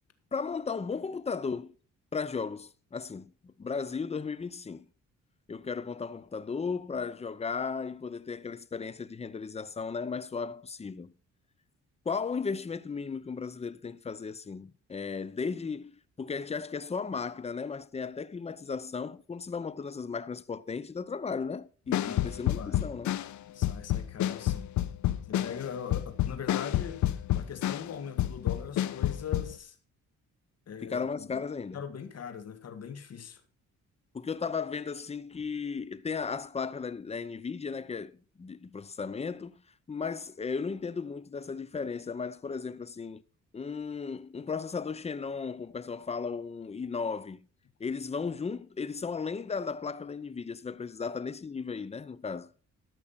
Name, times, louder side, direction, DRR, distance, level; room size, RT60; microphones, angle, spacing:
voice 1, 0.3-1.7 2.1-4.9 5.5-11.1 12.0-23.1 30.8-31.8 34.1-39.6 39.9-43.2 43.5-47.5 47.8-52.5, left 5 dB, 20° left, 0.7 m, -35 dB
sound 1, 21.9-27.9 28.2-29.5, left 13 dB, 75° left, 0.8 m, -29 dB
voice 2, 22.0-22.9 23.5-24.7 25.3-29.8 30.7-31.4 31.7-33.4, left 7 dB, 55° left, 2.1 m, -41 dB
13.5 x 6.3 x 5.6 m
cardioid pair, 90°, 30 cm